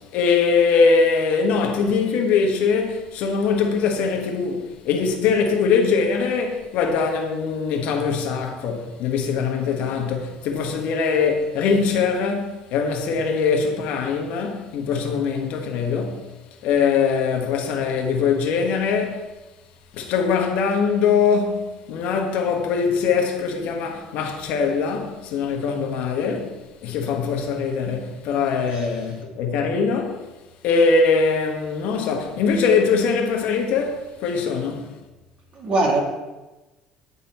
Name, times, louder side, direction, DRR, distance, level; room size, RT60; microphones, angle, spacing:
voice 1, 0.0-16.3 16.6-19.3 19.9-30.3 30.6-34.9, left 5 dB, 70° left, 1.2 m, -22 dB
voice 2, 35.5-36.0, right 2 dB, 45° right, 1.8 m, -22 dB
9.2 x 4.1 x 4.2 m
cardioid pair, 105°, 2 cm